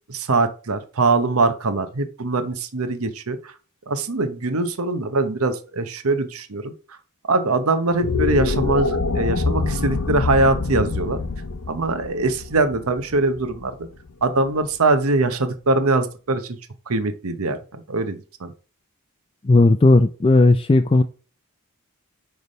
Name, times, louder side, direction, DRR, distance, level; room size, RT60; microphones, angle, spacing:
voice 1, 0.1-3.5 3.9-6.7 7.3-11.2 11.7-13.9 14.2-16.6 16.9-18.5, right 3 dB, 70° right, 0.9 m, -22 dB
sound 1, 7.8-14.2, left 3 dB, 75° left, 0.7 m, -25 dB
voice 2, 19.4-21.0, left 2 dB, 25° left, 0.4 m, -15 dB
9.3 x 3.4 x 5.3 m
head